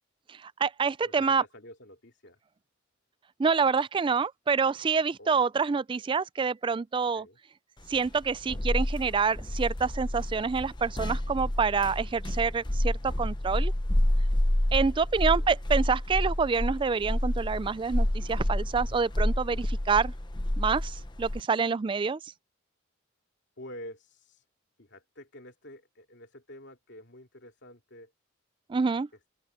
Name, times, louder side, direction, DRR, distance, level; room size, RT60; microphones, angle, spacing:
voice 1, 0.3-1.4 3.4-7.3 7.9-13.7 14.7-20.1 20.6-22.2 28.7-29.1, right 5 dB, 25° right, 0.3 m, -27 dB
voice 2, 1.0-2.4 5.2-5.4 7.1-7.4 15.3-15.5 23.6-24.4 24.8-28.1, left 1 dB, 60° left, 2.8 m, -48 dB
sound 1, 7.9-21.4, left 1 dB, 20° left, 0.9 m, -29 dB
open air
head